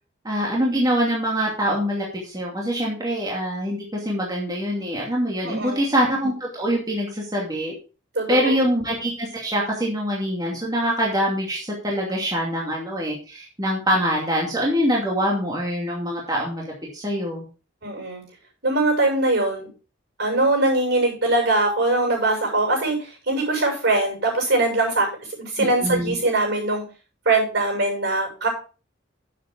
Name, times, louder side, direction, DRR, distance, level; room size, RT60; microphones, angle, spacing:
voice 1, 0.2-7.7 8.3-17.4 25.6-26.1, equal, 20° right, -3 dB, 2.5 m, -24 dB
voice 2, 5.4-5.9 8.1-8.6 17.8-18.2 18.6-19.7 20.2-26.8 27.3-28.5, right 2 dB, 65° right, 1 dB, 7.1 m, -22 dB
11.5 x 7.8 x 3.8 m, 0.34 s
head